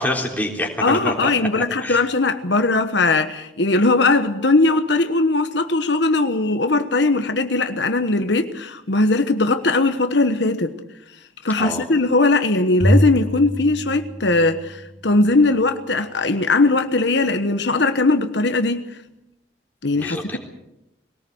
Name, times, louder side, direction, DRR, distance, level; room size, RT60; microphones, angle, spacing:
voice 1, 0.0-1.3 1.6-2.0 11.6-11.9 20.0-20.4, left 1 dB, 10° left, 3.6 m, -26 dB
voice 2, 0.8-10.7 11.4-18.8 19.8-20.4, left 2 dB, 65° left, 1.2 m, -19 dB
Bowed string instrument, 12.8-15.2, equal, 40° right, 1.7 m, -23 dB
22.0 x 18.5 x 8.0 m
head